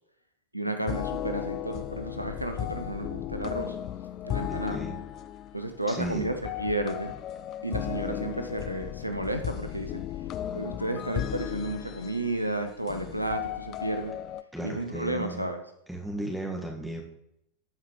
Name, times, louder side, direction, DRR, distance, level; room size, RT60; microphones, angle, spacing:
voice 1, 0.5-3.8 4.2-4.8 5.5-6.3 6.6-7.1 7.6-10.0 10.5-14.1 14.6-15.6, right 1 dB, 90° right, 7 dB, 0.6 m, -32 dB
sound 1, 0.9-14.4, left 11 dB, 35° left, 0.3 m, -36 dB
voice 2, 4.5-5.0 5.9-6.2 14.5-15.4 15.9-17.0, right 1 dB, ahead, 0 dB, 1.6 m, -35 dB
13.0 x 4.8 x 3.1 m, 0.77 s
figure-of-eight pair, 90°, 0 cm